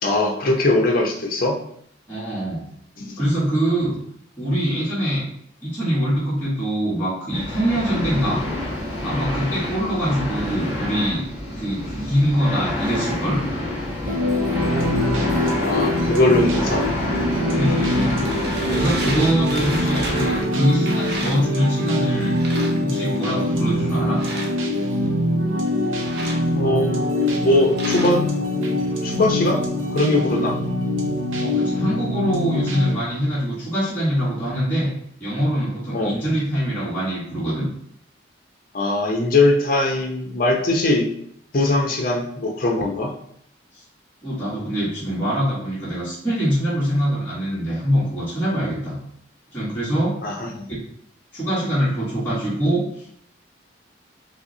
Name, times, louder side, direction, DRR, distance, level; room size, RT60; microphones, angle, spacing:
voice 1, 0.0-1.6 3.0-3.2 15.6-16.8 18.0-18.8 26.4-29.6 29.9-30.6 35.9-36.1 38.7-41.1 41.5-43.1 50.2-50.7, left 2 dB, 45° left, 1 dB, 0.7 m, -21 dB
voice 2, 2.1-2.6 3.2-4.0 4.4-5.2 5.6-8.4 9.0-11.2 11.5-13.4 17.5-18.2 18.7-22.3 22.8-24.2 31.4-34.9 35.2-37.7 43.7-43.8 44.2-49.0 49.5-50.2 51.3-53.1, equal, 10° left, -11 dB, 1.2 m, -23 dB
sound 1, 7.3-20.4, left 1 dB, 10° right, 0.9 m, -27 dB
sound 2, 14.1-32.9, left 1 dB, 90° right, 0.6 m, -23 dB
sound 3, 17.4-21.9 22.2-23.3 24.1-25.1 25.7-28.3, right 1 dB, 55° right, 0.9 m, -33 dB
5.5 x 2.1 x 2.6 m, 0.67 s
head